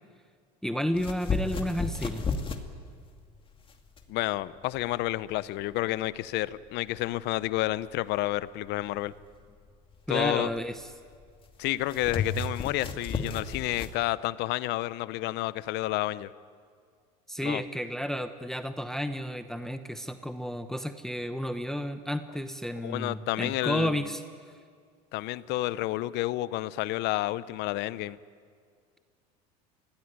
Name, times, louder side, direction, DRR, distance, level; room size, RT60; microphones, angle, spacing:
voice 1, 0.6-2.2 10.1-10.9 17.3-24.2, equal, ahead, 9 dB, 1.0 m, -32 dB
sound 1, 0.9-14.0, left 4 dB, 25° left, 2.5 m, -36 dB
voice 2, 4.1-9.1 10.1-10.5 11.6-16.3 17.4-17.6 22.8-24.0 25.1-28.2, left 17 dB, 60° left, 17 dB, 0.8 m, -30 dB
24.5 x 17.5 x 9.6 m, 2.1 s
supercardioid pair, 100°, 20 cm